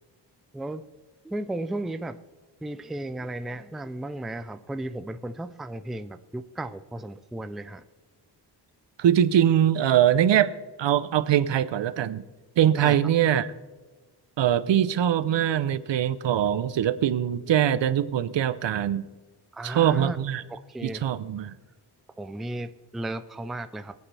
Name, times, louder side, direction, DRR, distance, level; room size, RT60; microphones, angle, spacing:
voice 1, 1.2-2.2 2.6-7.8 12.7-13.3 19.5-20.2 20.5-21.0 22.2-23.9, right 1 dB, ahead, 10 dB, 0.3 m, -34 dB
voice 2, 9.0-10.5 10.8-12.2 12.6-13.5 14.4-19.1 19.6-20.4 20.8-21.5, right 10 dB, 80° right, 14 dB, 0.7 m, -22 dB
23.5 x 8.5 x 3.4 m, 1.3 s
wide cardioid pair, 140°, 43 cm